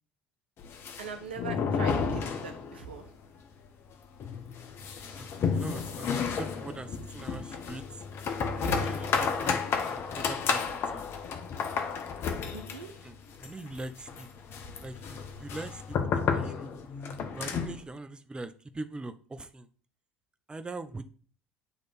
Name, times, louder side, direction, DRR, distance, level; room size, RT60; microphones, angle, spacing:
sound 1, 0.6-3.0 3.2-3.3 3.7-3.8 4.2-17.8, left 6 dB, 50° left, 1.0 m, -32 dB
voice 1, 1.0-3.1 9.5-9.8 12.5-12.9, right 5 dB, 85° right, 7 dB, 0.9 m, -41 dB
voice 2, 5.1-8.0 8.6-10.6 10.9-11.0 13.0-13.1 13.4-14.3 14.8-16.0 16.3-16.7 17.4-19.7 20.5-21.0, right 2 dB, 15° right, 10 dB, 0.6 m, -42 dB
8.4 x 3.3 x 4.2 m, 0.42 s
hypercardioid pair, 65°, 5 cm